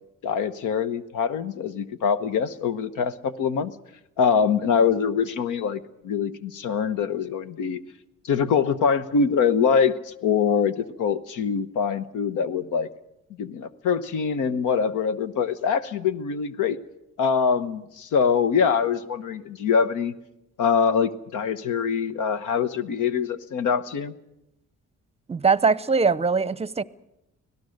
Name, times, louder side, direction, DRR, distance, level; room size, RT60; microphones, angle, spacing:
voice 1, 0.2-3.7 4.2-7.8 8.2-12.9 13.4-16.8 17.2-20.1 20.6-24.1, left 6 dB, 85° left, 1.1 m, -24 dB
voice 2, 25.3-26.8, right 5 dB, 20° right, 0.7 m, -21 dB
24.5 x 17.5 x 6.6 m
cardioid pair, 90°, 30 cm